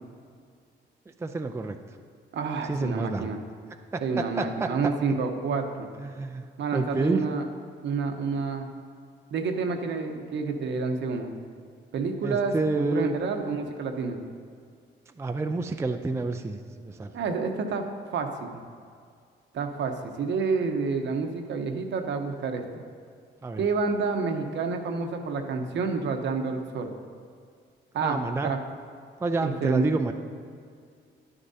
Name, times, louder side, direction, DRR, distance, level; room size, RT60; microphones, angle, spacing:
voice 1, 1.1-1.8 2.7-3.3 3.9-4.7 6.0-6.4 6.7-7.2 12.2-13.2 15.1-17.1 23.4-23.6 28.0-28.5 29.2-30.1, right 3 dB, 15° right, 6 dB, 0.4 m, -29 dB
voice 2, 2.3-3.4 4.0-5.9 6.6-7.5 7.8-8.7 9.3-11.3 11.9-14.2 17.1-17.8 18.1-18.6 19.5-22.8 23.6-26.9 27.9-28.2 28.4-28.6 29.4-29.9, right 4 dB, 65° right, 4 dB, 0.9 m, -29 dB
10.5 x 9.8 x 2.7 m, 2.2 s
cardioid pair, 90°, 20 cm